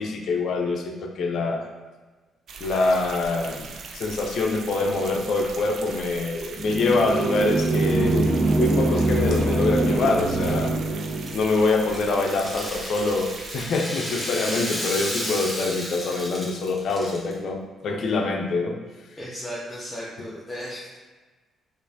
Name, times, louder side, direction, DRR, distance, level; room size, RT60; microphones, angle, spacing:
voice 1, 0.0-1.7 2.6-10.7 11.3-18.8, left 3 dB, 65° left, 3 dB, 0.5 m, -25 dB
sound 1, 2.5-13.7, right 5 dB, 65° right, 0.3 m, -40 dB
sound 2, 6.5-11.5, right 2 dB, 45° right, 0.8 m, -23 dB
Rattle (instrument), 11.1-17.3, equal, ahead, 1.0 m, -33 dB
voice 2, 19.2-21.0, equal, 20° left, -7 dB, 0.7 m, -35 dB
4.4 x 2.5 x 2.7 m, 1.3 s
cardioid pair, 90°, 0 cm